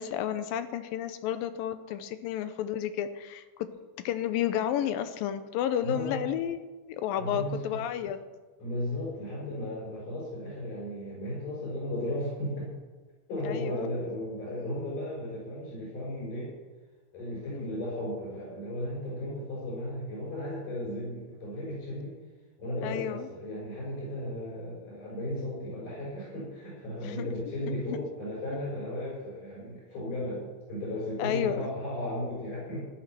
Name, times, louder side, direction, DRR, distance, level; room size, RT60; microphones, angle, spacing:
voice 1, 0.0-8.2 13.5-13.9 17.5-17.7 22.8-23.3 27.0-27.3 27.9-28.0 31.2-31.7, left 10 dB, 90° left, 11 dB, 2.6 m, -32 dB
voice 2, 5.8-6.3 7.2-7.6 8.6-12.7 13.3-16.5 17.1-22.2 22.6-32.9, left 1 dB, 65° left, -7 dB, 7.0 m, -35 dB
14.5 x 11.5 x 6.0 m, 1.3 s
omnidirectional pair, 4.0 m